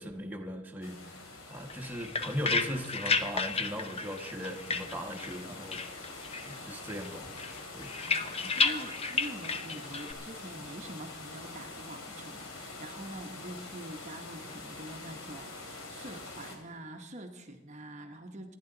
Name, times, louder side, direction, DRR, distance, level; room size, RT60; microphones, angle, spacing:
voice 1, 0.0-5.8 6.5-7.3 7.7-7.9, equal, 10° right, 2 dB, 1.2 m, -38 dB
sound 1, 0.8-16.6, left 3 dB, 65° left, 2.9 m, -45 dB
sound 2, 1.7-5.4 5.7-6.6 6.9-10.1, left 4 dB, 25° left, 0.8 m, -32 dB
voice 2, 8.0-18.5, right 1 dB, 30° right, 4 dB, 1.0 m, -45 dB
27.0 x 10.0 x 3.9 m, 1.2 s
head